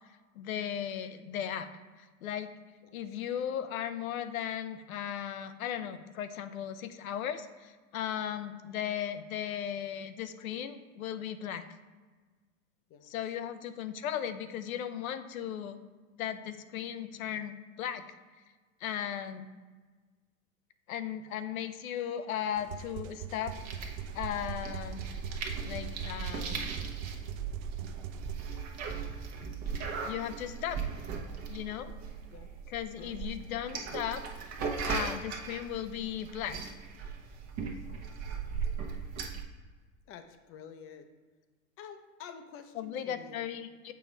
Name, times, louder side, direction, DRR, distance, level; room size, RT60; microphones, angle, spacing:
voice 1, 0.3-1.7 2.0-2.5 2.9-11.6 13.1-15.8 16.2-18.0 18.8-19.5 20.9-23.6 24.1-25.0 25.6-26.7 30.0-30.9 31.5-31.9 32.7-34.5 34.9-36.7 42.8-43.9, left 9 dB, 85° left, 11 dB, 0.7 m, -36 dB
sound 1, 22.6-28.3, right 9 dB, 80° right, 0.5 m, -42 dB
sound 2, 23.5-39.4, right 5 dB, 40° right, 1.0 m, -38 dB
voice 2, 32.3-32.7 33.0-33.2 40.1-41.1 41.8-43.5, left 7 dB, 35° left, 8 dB, 0.6 m, -49 dB
6.9 x 3.1 x 5.1 m, 1.4 s
hypercardioid pair, 115°, 41 cm